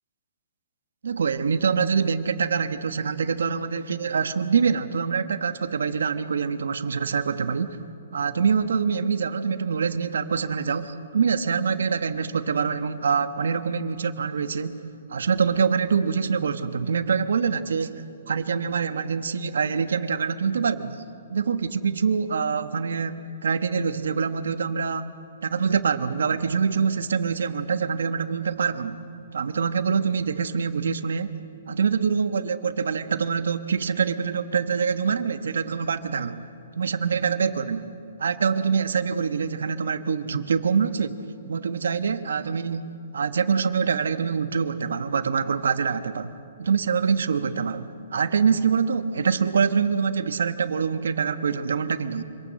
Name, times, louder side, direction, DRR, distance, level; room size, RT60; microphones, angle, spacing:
voice 1, 1.0-7.8 8.1-14.8 15.1-21.0 21.3-25.1 25.4-29.0 29.3-31.3 31.7-36.5 36.8-37.9 38.2-41.2 41.5-46.3 46.6-52.2, right 6 dB, 80° right, 11 dB, 1.1 m, -25 dB
25.5 x 19.0 x 7.7 m, 2.6 s
hypercardioid pair, 175°, 0 cm